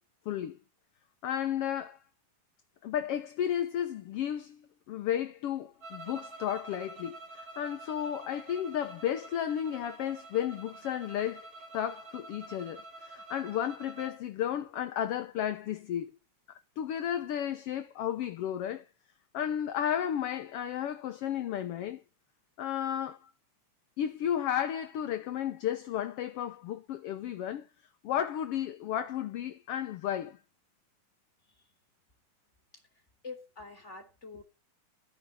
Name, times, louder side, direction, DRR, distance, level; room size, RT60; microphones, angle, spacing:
voice 1, 0.2-0.6 1.2-2.0 2.8-4.6 4.9-11.5 11.7-16.1 16.5-18.8 19.3-22.0 22.6-23.3 24.0-27.7 28.0-30.4, left 10 dB, 65° left, 1.7 m, -33 dB
sound 1, 5.8-14.2, right 2 dB, 50° right, 4.3 m, -48 dB
voice 2, 31.4-31.7 32.7-34.4, left 4 dB, 20° left, 3.7 m, -47 dB
14.0 x 10.0 x 5.6 m
omnidirectional pair, 3.3 m